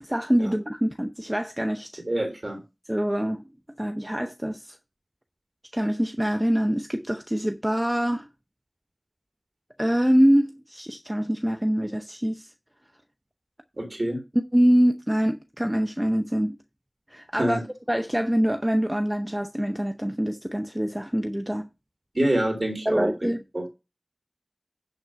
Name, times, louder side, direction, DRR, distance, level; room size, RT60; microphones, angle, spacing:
voice 1, 0.0-2.0 2.9-3.4 3.8-4.8 5.7-8.3 9.8-12.5 14.5-16.6 17.1-17.6 17.9-21.7 22.9-23.4, equal, 15° right, 0.7 m, -24 dB
voice 2, 2.1-2.6 13.8-14.2 17.3-17.6 22.1-23.6, right 1 dB, 55° right, 3.3 m, -26 dB
11.0 x 3.9 x 5.8 m
wide cardioid pair, 45°, 0 cm